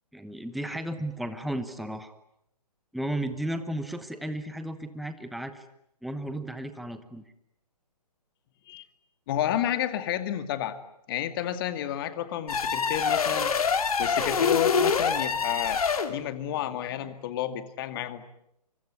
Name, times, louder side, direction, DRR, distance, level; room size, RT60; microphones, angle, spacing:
voice 1, 0.1-2.1 2.9-5.6 6.0-7.2, right 1 dB, ahead, 10 dB, 1.1 m, -34 dB
voice 2, 9.3-10.8 11.1-13.5 14.0-15.8 16.1-18.2, left 11 dB, 35° left, 10 dB, 2.3 m, -30 dB
sound 1, 12.5-16.2, left 6 dB, 60° left, 3.1 m, -25 dB
25.0 x 24.5 x 9.6 m, 0.77 s
figure-of-eight pair, 135°, 21 cm